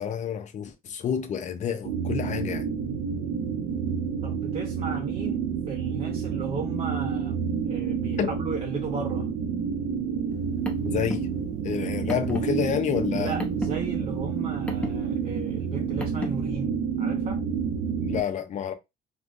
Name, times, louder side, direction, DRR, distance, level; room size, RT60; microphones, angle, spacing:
voice 1, 0.0-2.7 8.2-8.3 10.8-11.3 11.6-13.3 18.0-18.7, left 8 dB, 45° left, 0.6 m, -29 dB
sound 1, 1.8-18.2, right 6 dB, 90° right, 0.4 m, -29 dB
voice 2, 4.2-9.3 13.1-17.4, right 5 dB, 35° right, 0.5 m, -35 dB
Car, 10.3-16.5, left 1 dB, 5° left, 0.7 m, -37 dB
3.3 x 2.1 x 2.4 m
cardioid pair, 110°, 17 cm